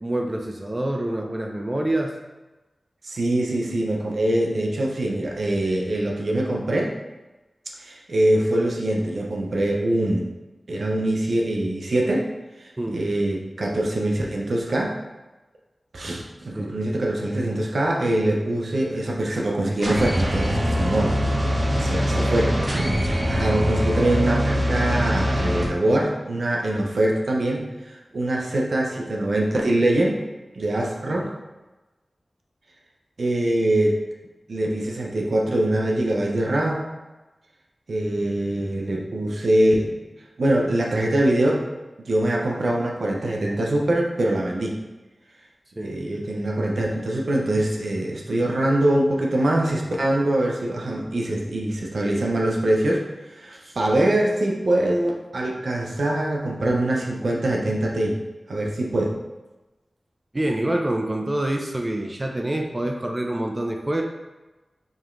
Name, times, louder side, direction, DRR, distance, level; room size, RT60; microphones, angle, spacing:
voice 1, 0.0-2.2 12.8-13.0 16.5-16.8 31.2-31.3 45.8-46.0 53.5-53.8 60.3-64.0, right 1 dB, 30° right, 2 dB, 0.5 m, -26 dB
voice 2, 3.0-6.9 7.8-10.3 10.7-12.3 12.9-15.0 15.9-21.2 21.8-30.2 30.5-31.3 33.2-34.0 34.5-36.9 37.9-40.0 40.4-41.6 42.1-44.8 45.8-53.0 53.4-58.2 58.5-59.2, right 1 dB, 75° right, -1 dB, 0.6 m, -23 dB
sound 1, 19.8-25.7, equal, 50° right, 0.9 m, -23 dB
5.1 x 2.9 x 2.5 m, 1.1 s
cardioid pair, 40°, 0 cm